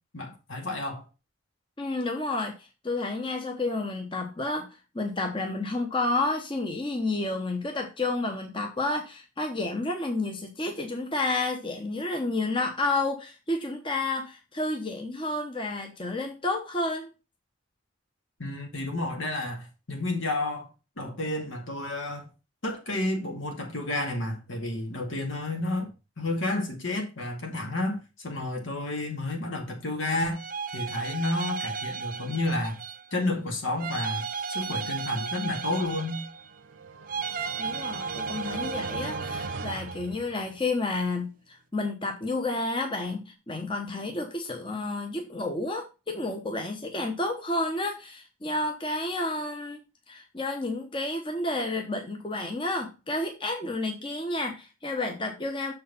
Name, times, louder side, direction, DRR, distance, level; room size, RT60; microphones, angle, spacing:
voice 1, 0.1-1.0 18.4-20.7 21.0-22.3 22.6-30.4 30.7-32.8 33.1-36.2, left 2 dB, 75° left, 2.2 m, -31 dB
voice 2, 1.8-4.7 4.9-17.1 37.6-49.8 50.1-55.7, left 2 dB, 25° left, 1.0 m, -30 dB
sound 1, 30.3-33.1 33.8-36.6 37.1-40.0, right 5 dB, 40° right, 0.5 m, -34 dB
sound 2, 36.4-40.8, right 4 dB, 80° right, 1.0 m, -39 dB
6.7 x 4.6 x 5.4 m
head